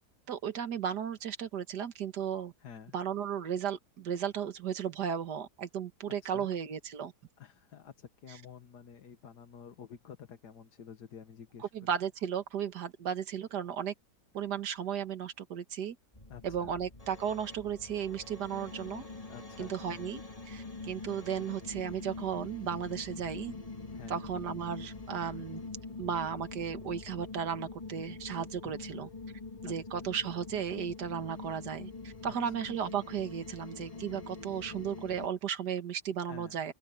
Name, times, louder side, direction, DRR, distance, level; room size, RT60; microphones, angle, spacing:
voice 1, 0.3-2.5 2.9-7.1 11.6-13.9 14.3-16.0 16.4-19.1 19.6-20.2 20.5-23.5 24.1-25.6 26.0-29.1 29.6-36.7, right 8 dB, 75° right, 2.0 m, -35 dB
voice 2, 2.6-2.9 6.2-6.5 7.4-11.9 16.3-16.7 19.3-20.0 23.9-24.3 28.6-29.1 29.7-30.0 32.2-32.5 36.3-36.6, left 7 dB, 70° left, 1.9 m, -50 dB
sound 1, 16.1-35.3, left 3 dB, 20° left, 2.0 m, -44 dB
open air
omnidirectional pair, 1.8 m